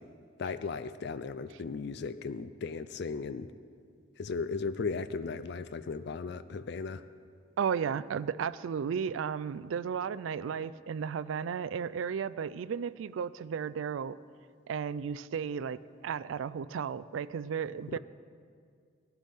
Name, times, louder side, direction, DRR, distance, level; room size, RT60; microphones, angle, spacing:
voice 1, 0.4-3.5 4.2-7.0 17.9-18.0, left 4 dB, 60° left, 12 dB, 0.4 m, -36 dB
voice 2, 7.6-14.2 14.7-18.0, right 7 dB, 80° right, 17 dB, 0.3 m, -34 dB
18.0 x 11.5 x 3.6 m, 2.2 s
head